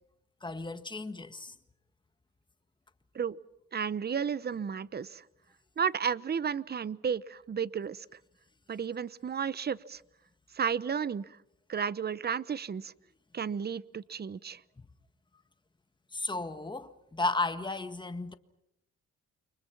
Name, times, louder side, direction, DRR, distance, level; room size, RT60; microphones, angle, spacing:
voice 1, 0.4-1.5 16.1-18.3, left 3 dB, 15° left, 1.6 m, -34 dB
voice 2, 3.7-5.2 5.8-8.0 8.7-10.0 10.5-11.3 11.7-12.9 13.3-14.6, right 7 dB, 35° right, 0.8 m, -33 dB
29.5 x 24.5 x 6.0 m
cardioid pair, 90°, 30 cm